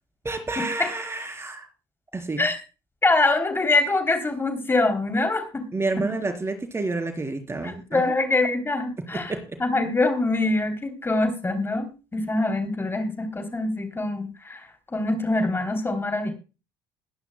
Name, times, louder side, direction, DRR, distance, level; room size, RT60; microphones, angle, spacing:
voice 1, 0.2-1.7 2.1-2.5 5.7-8.0 9.3-9.6, right 3 dB, 25° right, 5 dB, 3.8 m, -29 dB
voice 2, 3.0-5.6 7.6-9.3 9.6-16.3, left 2 dB, 20° left, 6 dB, 3.1 m, -24 dB
21.5 x 11.0 x 2.2 m, 0.31 s
hypercardioid pair, 60°, 11 cm